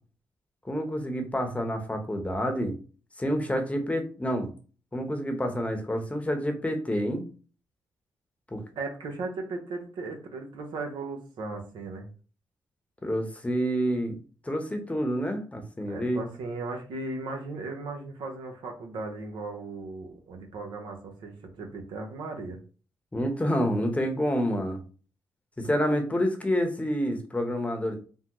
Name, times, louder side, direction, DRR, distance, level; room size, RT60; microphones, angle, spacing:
voice 1, 0.6-2.8 3.2-4.5 4.9-7.2 8.5-8.6 13.0-14.2 14.4-16.2 23.1-24.8 25.6-28.0, equal, 15° left, 4 dB, 0.8 m, -28 dB
voice 2, 8.8-12.1 15.9-22.6, right 3 dB, 80° right, 3 dB, 0.7 m, -37 dB
3.5 x 2.0 x 2.9 m, 0.38 s
supercardioid pair, 60°, 8 cm